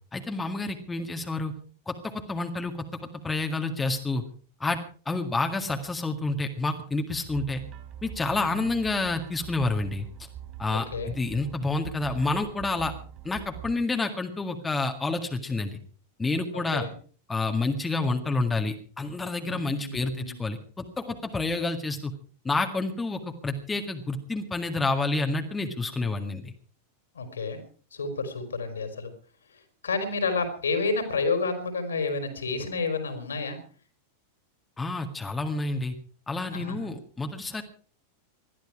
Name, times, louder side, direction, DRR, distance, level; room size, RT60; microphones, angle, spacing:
voice 1, 0.1-1.5 1.9-2.8 3.2-4.2 4.6-4.8 5.1-7.6 8.0-10.1 10.6-12.9 13.2-15.8 16.2-16.9 17.3-22.1 22.4-26.5 34.8-35.9 36.3-37.6, left 3 dB, 10° left, 5 dB, 1.8 m, -29 dB
sound 1, 7.3-13.7, right 10 dB, 35° right, 4.8 m, -43 dB
voice 2, 10.7-11.1 16.5-16.9 19.4-20.4 27.1-27.6 27.9-29.1 29.8-33.6 36.5-36.9, left 4 dB, 70° left, 7 dB, 4.3 m, -30 dB
20.5 x 13.0 x 4.8 m, 0.43 s
figure-of-eight pair, 90°, 0 cm